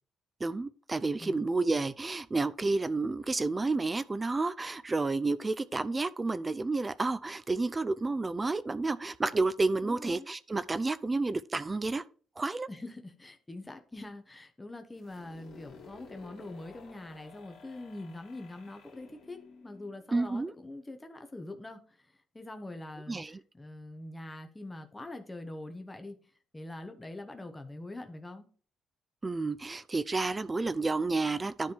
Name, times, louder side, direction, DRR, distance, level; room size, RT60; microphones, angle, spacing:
voice 1, 0.4-12.0 12.4-12.7 20.1-20.5 23.1-23.4 29.2-31.7, right 3 dB, 25° right, 0.3 m, -30 dB
voice 2, 9.8-10.3 12.7-26.2 26.5-28.5, left 2 dB, 15° left, 1.0 m, -44 dB
sound 1, 14.9-20.6, left 5 dB, 75° left, 2.4 m, -54 dB
10.5 x 3.5 x 4.5 m
cardioid pair, 90°, 0 cm